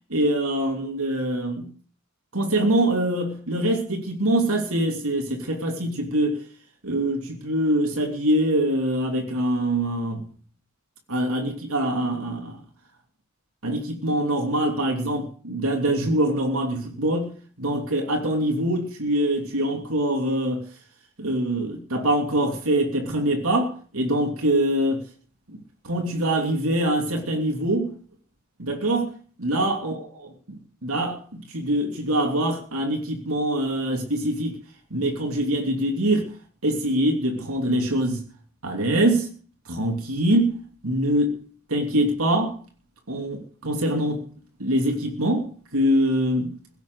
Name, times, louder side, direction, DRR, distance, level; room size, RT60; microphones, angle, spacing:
voice 1, 0.1-1.7 2.3-6.4 6.8-10.3 11.1-12.6 13.6-20.6 21.2-25.1 25.5-27.9 28.6-29.1 29.4-30.0 30.5-31.2 31.5-34.6 34.9-36.3 36.6-38.2 38.6-39.3 39.7-40.6 40.8-41.4 41.7-42.6 43.1-44.2 44.6-46.6, right 1 dB, 80° right, 3.0 m, -24 dB
17.0 x 8.1 x 8.0 m
head